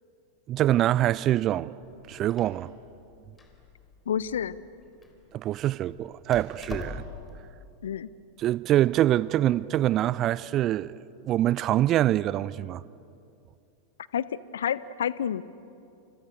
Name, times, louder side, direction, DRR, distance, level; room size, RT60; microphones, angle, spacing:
voice 1, 0.5-1.7 2.1-2.7 5.3-7.0 8.4-10.9 11.3-12.8, right 13 dB, 35° right, 0.6 m, -24 dB
Door, 1.8-7.4, left 4 dB, 15° left, 4.0 m, -44 dB
voice 2, 4.1-4.6 7.8-8.1 14.1-14.3 14.5-15.4, left 9 dB, 65° left, 0.8 m, -29 dB
29.5 x 28.5 x 6.7 m
figure-of-eight pair, 90°, 0 cm